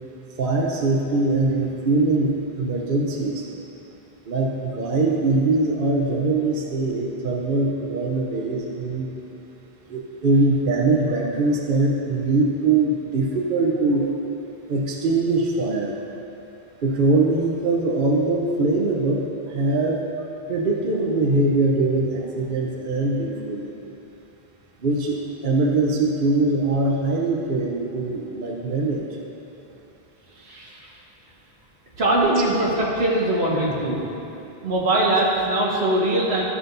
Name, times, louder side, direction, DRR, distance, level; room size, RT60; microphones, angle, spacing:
voice 1, 0.4-3.5 4.2-9.1 9.9-14.1 14.7-16.0 16.8-20.1 20.5-23.8 24.8-29.0, right 2 dB, 55° right, -2 dB, 0.9 m, -22 dB
voice 2, 30.4-30.9 32.0-34.0 34.6-36.4, right 1 dB, 85° right, -4 dB, 1.6 m, -21 dB
14.0 x 6.1 x 2.6 m, 3.0 s
omnidirectional pair, 1.1 m